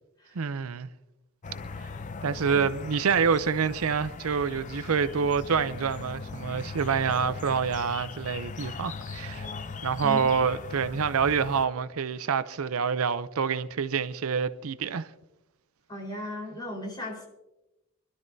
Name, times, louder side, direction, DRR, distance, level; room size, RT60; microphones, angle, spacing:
voice 1, 0.3-0.9 2.2-9.5 9.8-15.1, right 6 dB, 75° right, 0.5 m, -27 dB
sound 1, 1.4-11.7, left 4 dB, 35° left, 0.5 m, -40 dB
voice 2, 15.9-17.3, left 1 dB, 20° left, 4.3 m, -36 dB
24.5 x 12.5 x 2.7 m
head